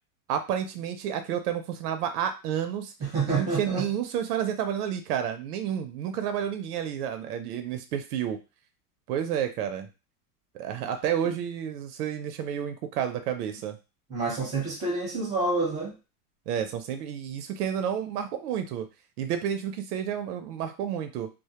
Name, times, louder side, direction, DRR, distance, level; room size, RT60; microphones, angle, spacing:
voice 1, 0.3-2.9 3.3-8.4 9.1-9.9 10.5-13.8 16.5-18.9 19.2-21.3, right 9 dB, 80° right, 8 dB, 0.6 m, -30 dB
voice 2, 3.1-3.8 14.1-15.9, right 3 dB, 10° right, -3 dB, 0.8 m, -28 dB
2.1 x 2.1 x 2.8 m, 0.30 s
supercardioid pair, 165°, 45 cm